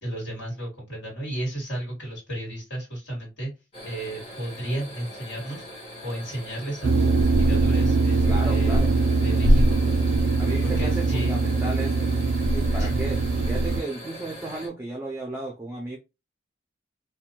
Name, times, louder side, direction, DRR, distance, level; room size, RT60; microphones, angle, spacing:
voice 1, 0.0-3.5 3.8-5.7 6.0-8.8 9.2-9.8 10.6-11.4 12.8-13.0, right 1 dB, 65° left, 1.7 m, -33 dB
sound 1, 3.7-14.7, equal, 30° left, 1.1 m, -41 dB
sound 2, 6.8-13.8, right 2 dB, 85° right, 0.4 m, -21 dB
voice 2, 8.2-8.9 10.4-12.1 12.5-16.0, right 2 dB, 10° right, 0.4 m, -34 dB
2.6 x 2.2 x 2.7 m
head